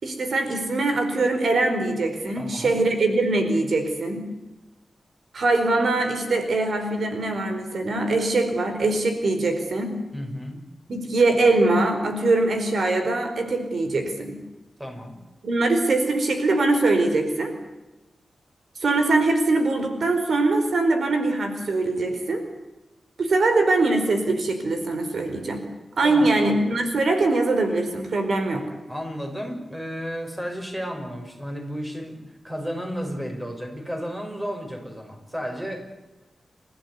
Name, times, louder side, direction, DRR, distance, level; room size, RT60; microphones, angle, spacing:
voice 1, 0.0-4.2 5.3-9.9 10.9-14.3 15.4-17.5 18.8-22.4 23.2-25.6 26.0-28.6, right 2 dB, 65° right, 6 dB, 4.5 m, -22 dB
voice 2, 2.4-2.8 10.1-10.6 14.8-15.2 26.0-26.3 28.9-32.2 32.4-35.9, equal, 10° right, 4 dB, 6.0 m, -33 dB
29.0 x 14.5 x 9.6 m, 1.0 s
wide cardioid pair, 110°, 0 cm